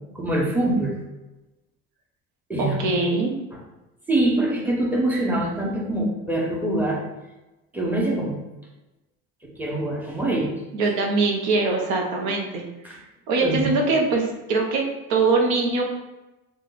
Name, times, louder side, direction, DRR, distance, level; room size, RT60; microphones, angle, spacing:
voice 1, 0.1-1.0 2.5-3.0 4.1-7.0 7.7-8.4 9.6-10.6 12.8-13.0 13.4-13.7, right 1 dB, 5° right, -3 dB, 1.1 m, -24 dB
voice 2, 2.6-3.3 10.7-13.0 13.3-15.8, right 3 dB, 75° right, 1 dB, 0.9 m, -23 dB
3.1 x 2.5 x 4.0 m, 1.0 s
supercardioid pair, 75°, 38 cm